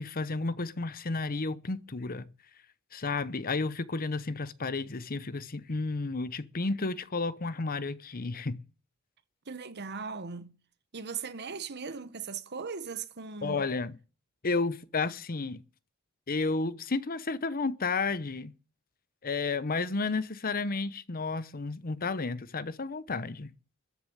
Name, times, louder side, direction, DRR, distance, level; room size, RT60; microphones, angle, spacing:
voice 1, 0.0-2.3 2.9-8.6 13.4-13.9 14.4-15.6 16.3-18.5 19.2-23.5, left 3 dB, 45° left, 0.9 m, -32 dB
voice 2, 9.5-10.5 10.9-13.7, right 5 dB, 50° right, 1.2 m, -38 dB
14.0 x 6.9 x 9.3 m
head